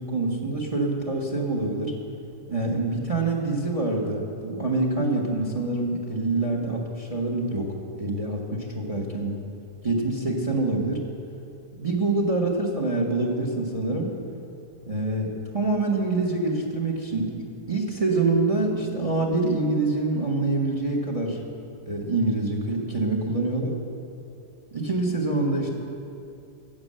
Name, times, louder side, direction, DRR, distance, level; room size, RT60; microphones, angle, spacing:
voice 1, 0.0-1.9 2.5-9.3 9.8-11.0 11.7-14.1 14.8-17.3 17.7-21.4 21.9-23.7 24.7-25.7, right 2 dB, 20° right, 0 dB, 1.3 m, -26 dB
12.0 x 8.3 x 7.6 m, 2.5 s
omnidirectional pair, 1.9 m